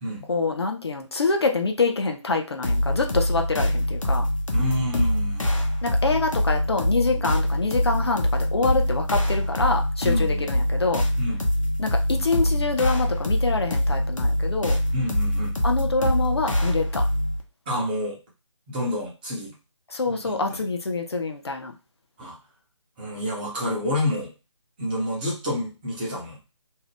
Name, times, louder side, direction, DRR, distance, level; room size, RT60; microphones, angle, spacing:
voice 1, 0.3-4.3 5.8-11.0 11.8-14.8 15.6-17.0 19.9-21.7, left 3 dB, 55° left, 3 dB, 0.5 m, -26 dB
sound 1, 2.6-17.4, left 1 dB, 80° left, 0.8 m, -24 dB
voice 2, 4.5-5.5 10.0-10.5 11.2-11.4 14.9-15.5 17.7-18.2 18.7-19.5 20.0-20.6 22.2-22.4 23.0-24.3 24.8-26.4, left 1 dB, 15° right, -4 dB, 0.9 m, -29 dB
2.7 x 2.3 x 3.2 m, 0.30 s
figure-of-eight pair, 150°, 16 cm